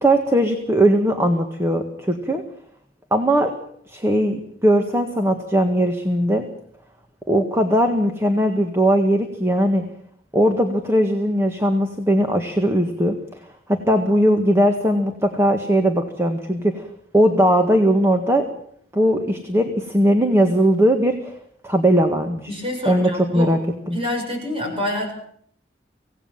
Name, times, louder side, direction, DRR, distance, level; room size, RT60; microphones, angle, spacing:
voice 1, 0.0-2.4 3.1-3.5 3.9-6.4 7.3-9.8 10.3-13.2 13.7-16.9 17.1-18.5 18.9-21.4 21.6-22.5 22.8-23.6 23.9-24.0, equal, 15° right, 5 dB, 1.7 m, -19 dB
voice 2, 22.5-23.5 23.9-25.1, left 1 dB, 30° right, 2 dB, 7.6 m, -27 dB
25.5 x 17.5 x 7.3 m, 0.65 s
head